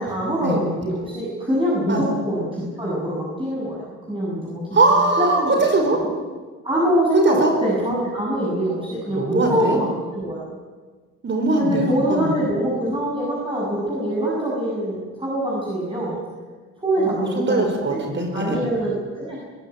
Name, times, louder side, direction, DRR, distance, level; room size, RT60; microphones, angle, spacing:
voice 1, 0.0-4.6 4.9-5.6 6.0-6.1 6.6-10.4 11.5-16.2 16.8-18.0 18.3-19.4, right 1 dB, 15° right, -6 dB, 7.8 m, -24 dB
voice 2, 4.7-6.0 7.1-7.5 9.1-9.8 11.2-12.4 17.0-18.6, right 2 dB, 40° right, 3 dB, 4.9 m, -21 dB
21.5 x 16.5 x 9.5 m, 1.4 s
cardioid pair, 90°, 30 cm